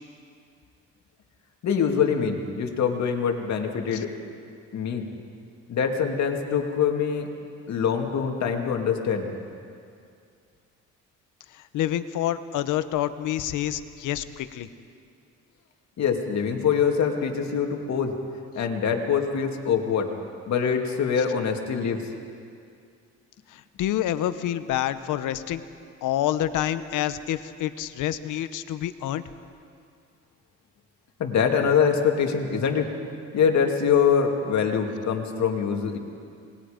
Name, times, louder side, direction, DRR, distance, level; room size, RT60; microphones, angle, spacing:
voice 1, 1.6-4.1 4.7-5.0 5.7-7.3 7.7-9.3 16.0-18.1 18.5-20.1 20.5-22.1 31.2-32.9 33.3-36.0, left 7 dB, 65° left, 3 dB, 2.4 m, -24 dB
voice 2, 11.5-14.7 23.5-25.6 26.0-29.2, left 12 dB, 85° left, 12 dB, 1.0 m, -28 dB
26.5 x 20.5 x 5.1 m, 2.4 s
cardioid pair, 90°, 30 cm